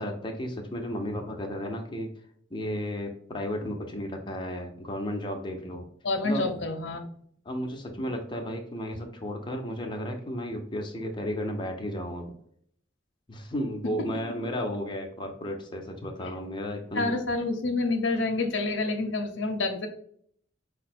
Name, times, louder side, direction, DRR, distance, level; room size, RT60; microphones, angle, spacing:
voice 1, 0.0-2.1 2.5-5.9 6.2-6.5 7.4-12.3 13.3-17.1, equal, 25° left, 2 dB, 0.7 m, -33 dB
voice 2, 6.0-7.1 16.9-19.9, left 3 dB, 75° left, 4 dB, 0.7 m, -28 dB
5.3 x 2.2 x 4.2 m, 0.63 s
head